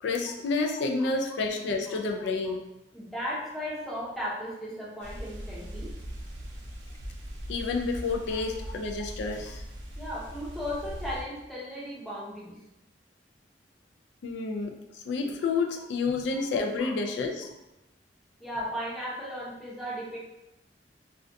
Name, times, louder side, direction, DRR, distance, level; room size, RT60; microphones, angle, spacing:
voice 1, 0.0-2.6 7.5-9.6 14.2-17.5, left 4 dB, 75° left, 3 dB, 0.3 m, -29 dB
voice 2, 2.9-5.9 8.3-8.7 10.0-12.6 16.3-16.4 16.8-16.9 18.4-20.2, equal, ahead, -8 dB, 0.7 m, -36 dB
sound 1, 5.0-11.2, equal, 75° right, 0.5 m, -40 dB
2.4 x 2.2 x 2.5 m, 0.89 s
head